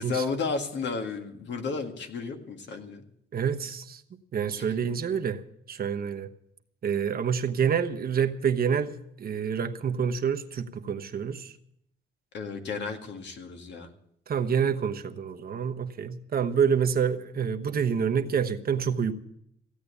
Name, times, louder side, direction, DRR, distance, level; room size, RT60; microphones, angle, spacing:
voice 1, 0.0-3.0 4.6-4.8 12.3-13.9, left 4 dB, 65° left, 5 dB, 2.0 m, -33 dB
voice 2, 3.3-5.4 5.7-6.3 6.8-11.5 14.3-19.1, right 7 dB, 50° right, 6 dB, 1.1 m, -27 dB
16.0 x 8.6 x 8.4 m, 0.73 s
cardioid pair, 90°, 20 cm